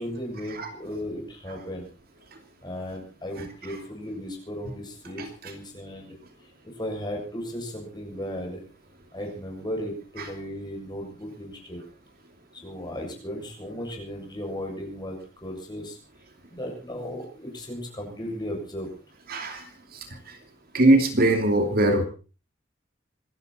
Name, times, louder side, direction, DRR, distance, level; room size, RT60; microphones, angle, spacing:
voice 1, 0.0-1.9 2.6-6.2 6.8-8.6 9.1-11.8 12.5-16.0 16.5-18.9, equal, 25° left, 0 dB, 7.3 m, -35 dB
voice 2, 19.3-19.6 20.7-22.0, right 1 dB, 50° right, 5 dB, 2.8 m, -20 dB
26.0 x 12.5 x 4.3 m, 0.37 s
head